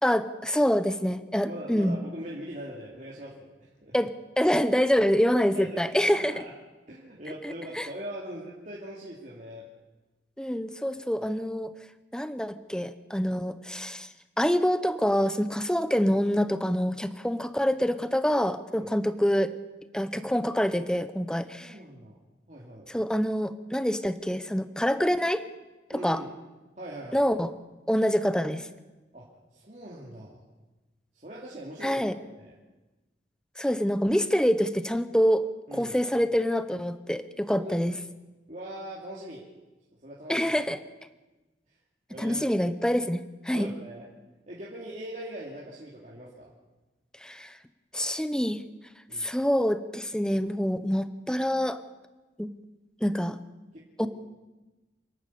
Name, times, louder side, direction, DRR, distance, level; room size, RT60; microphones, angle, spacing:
voice 1, 0.0-2.0 3.9-4.1 4.4-6.3 7.4-7.9 10.4-11.7 12.1-14.1 14.4-19.5 19.9-21.7 22.9-25.4 26.0-26.2 27.1-27.5 27.9-28.7 31.8-32.1 33.6-35.4 35.7-37.9 40.3-40.8 42.2-43.7 47.2-47.5 47.9-48.6 49.2-51.8 52.4-52.5 53.0-53.4 54.0-54.1, equal, 5° left, 12 dB, 0.8 m, -26 dB
voice 2, 1.3-4.0 5.5-6.5 6.9-9.6 18.8-18.9 21.6-22.2 22.5-22.9 25.9-26.3 26.8-27.3 29.1-29.3 29.5-30.4 31.1-32.1 32.4-32.5 35.7-36.0 37.5-37.8 38.5-39.4 40.0-40.6 42.1-42.5 43.5-44.1 44.5-46.5 49.1-49.3 53.7-54.1, right 1 dB, 40° right, -5 dB, 3.0 m, -41 dB
27.5 x 12.0 x 8.6 m, 1.1 s
head